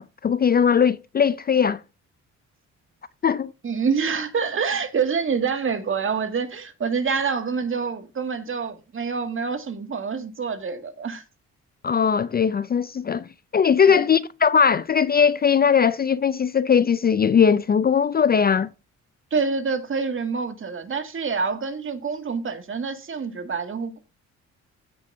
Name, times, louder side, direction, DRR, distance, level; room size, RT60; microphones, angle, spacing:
voice 1, 0.0-1.8 3.2-3.5 11.8-18.7, left 7 dB, 30° left, 0.4 m, -20 dB
voice 2, 3.6-11.2 13.9-14.0 19.3-24.0, right 5 dB, 45° right, 2.1 m, -26 dB
15.5 x 7.1 x 2.7 m
cardioid pair, 90°, 30 cm